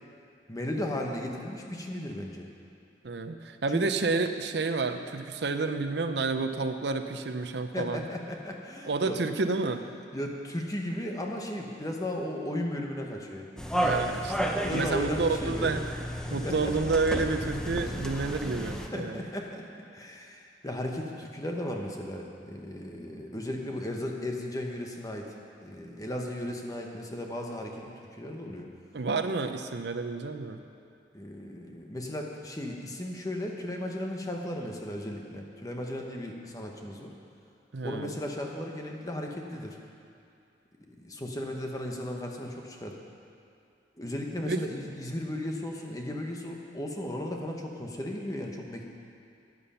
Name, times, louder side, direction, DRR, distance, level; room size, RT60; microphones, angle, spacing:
voice 1, 0.5-2.5 3.7-3.9 7.7-9.2 10.1-13.5 14.6-15.8 16.3-16.7 18.9-19.7 19.9-25.3 25.6-28.7 31.1-37.1 37.8-39.8 40.9-43.0 44.0-48.8, left 1 dB, 20° left, 1 dB, 1.1 m, -35 dB
voice 2, 3.0-8.0 8.8-9.8 13.8-15.8 16.3-19.2 28.9-30.6 37.7-38.1 44.5-44.6, right 3 dB, 65° right, 8 dB, 0.6 m, -30 dB
sound 1, 13.6-18.9, equal, 5° left, 0.7 m, -32 dB
14.0 x 9.7 x 5.7 m, 2.5 s
head